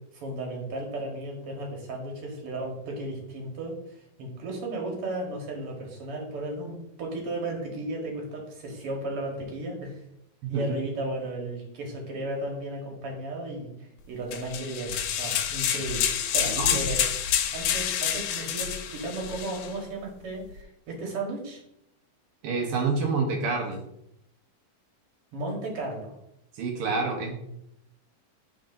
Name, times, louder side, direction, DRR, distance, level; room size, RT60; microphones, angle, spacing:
voice 1, 0.1-10.0 10.5-17.1 17.5-21.6 25.3-26.1, right 2 dB, 55° right, 0 dB, 1.7 m, -35 dB
sound 1, 14.3-19.7, left 9 dB, 85° left, 2.4 m, -28 dB
voice 2, 22.4-23.8 26.5-27.3, right 4 dB, 85° right, 0 dB, 1.2 m, -27 dB
10.5 x 3.9 x 2.6 m, 0.79 s
omnidirectional pair, 4.1 m